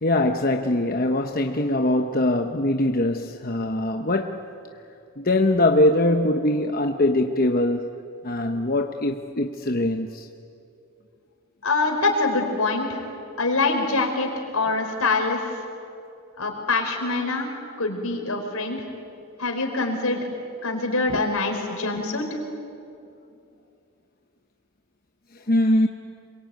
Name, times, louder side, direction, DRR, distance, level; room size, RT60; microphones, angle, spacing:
voice 1, 0.0-4.4 5.2-7.9 8.2-10.3 21.1-21.2 25.5-25.9, left 1 dB, 40° left, 0.9 m, -22 dB
voice 2, 11.6-13.0 13.4-15.4 16.4-17.5 17.8-18.8 19.4-20.2 20.6-22.2, left 3 dB, 80° left, 4.8 m, -24 dB
27.0 x 23.0 x 9.3 m
head